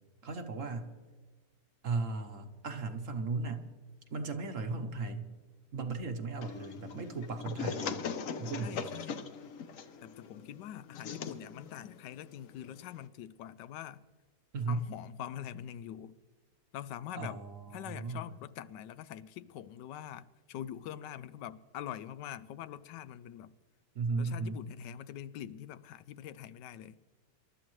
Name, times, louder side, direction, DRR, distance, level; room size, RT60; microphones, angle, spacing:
voice 1, 0.2-0.9 1.8-3.7 4.1-5.3 5.7-8.0 8.4-8.9 14.5-14.8 17.1-18.3 23.9-24.6, right 3 dB, 55° right, 1.2 m, -36 dB
sound 1, 6.4-13.1, left 6 dB, 60° left, 1.0 m, -41 dB
voice 2, 8.5-9.3 10.0-14.0 14.7-16.2 16.7-17.4 17.7-23.5 24.2-27.0, left 11 dB, 80° left, 1.2 m, -44 dB
26.5 x 12.5 x 3.1 m
omnidirectional pair, 1.9 m